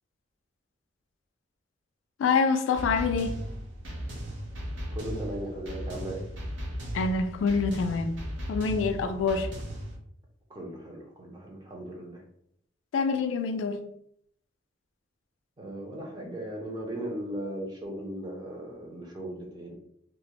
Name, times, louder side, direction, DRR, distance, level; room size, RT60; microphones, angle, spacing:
voice 1, 2.2-3.4 6.9-8.2 8.5-9.5 12.9-13.8, left 5 dB, 85° left, 0.3 m, -26 dB
sound 1, 2.7-10.0, equal, 75° right, 0.6 m, -36 dB
voice 2, 4.9-6.2 10.5-12.2 15.6-19.7, right 1 dB, 20° right, 0.5 m, -37 dB
2.3 x 2.0 x 2.8 m
head